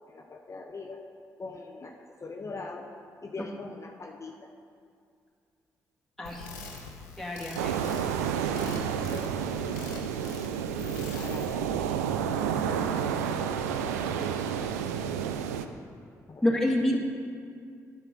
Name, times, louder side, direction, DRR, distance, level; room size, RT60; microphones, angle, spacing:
voice 1, 0.1-1.0 1.4-1.9 2.2-2.9 3.2-4.5 7.5-8.0 8.7-10.2 11.1-11.7 12.4-14.8 16.3-16.4, left 3 dB, 35° left, 2 dB, 0.8 m, -43 dB
sound 1, 6.2-11.4, left 3 dB, 85° left, 0.8 m, -44 dB
voice 2, 7.2-7.7 16.4-17.0, left 1 dB, 5° left, -2 dB, 1.9 m, -27 dB
sound 2, 7.6-15.7, right 8 dB, 85° right, 0.3 m, -30 dB
9.8 x 5.6 x 6.2 m, 2.3 s
hypercardioid pair, 40°, 8 cm